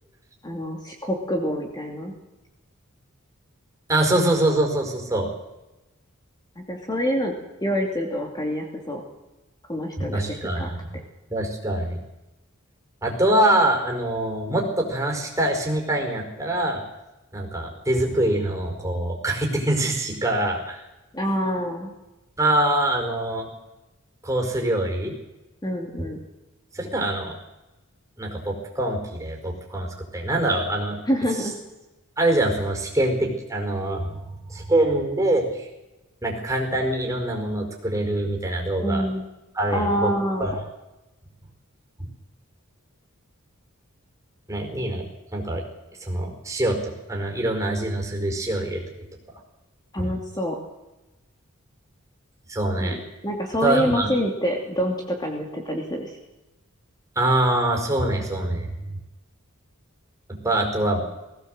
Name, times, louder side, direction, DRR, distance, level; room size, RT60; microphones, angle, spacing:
voice 1, 0.4-2.1 6.6-7.3 7.6-9.0 9.7-10.2 10.6-10.7 21.1-21.9 25.6-26.2 31.1-31.6 38.8-39.2 39.7-40.5 49.9-50.6 52.8-53.0 53.2-56.1, equal, 20° left, 1 dB, 2.6 m, -26 dB
voice 2, 3.9-5.3 10.0-11.0 11.3-12.0 13.0-16.8 17.3-20.8 22.4-23.5 24.2-25.1 26.0-26.1 26.7-27.4 28.2-31.0 32.2-34.2 34.5-35.7 36.2-39.1 39.5-40.1 40.4-40.6 42.0-42.1 44.5-45.1 45.3-45.6 46.0-49.0 50.0-50.1 52.5-53.0 53.6-54.1 57.1-58.7 60.3-61.0, right 1 dB, 15° right, 1 dB, 4.7 m, -24 dB
20.0 x 16.5 x 7.9 m, 1.0 s
head